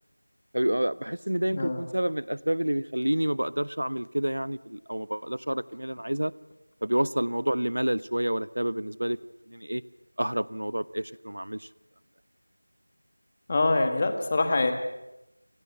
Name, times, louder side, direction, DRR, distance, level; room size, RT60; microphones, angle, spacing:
voice 1, 0.5-6.3 6.8-9.2 9.5-9.8 10.2-11.7, right 1 dB, 80° right, 19 dB, 0.9 m, -28 dB
voice 2, 1.5-1.8 13.5-14.7, left 2 dB, 15° left, 7 dB, 1.4 m, -24 dB
28.5 x 18.0 x 7.9 m, 0.92 s
figure-of-eight pair, 175°, 0 cm